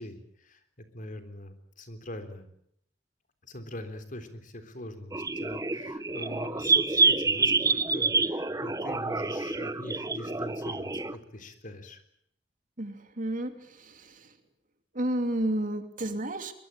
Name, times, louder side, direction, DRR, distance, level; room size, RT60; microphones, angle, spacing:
voice 1, 0.0-2.5 3.4-12.0, left 1 dB, 50° left, 8 dB, 3.6 m, -42 dB
sound 1, 5.1-11.2, right 3 dB, 20° right, 1.0 m, -27 dB
voice 2, 12.8-14.3 14.9-16.5, right 1 dB, 50° right, 8 dB, 2.8 m, -31 dB
23.5 x 22.5 x 9.0 m, 0.71 s
head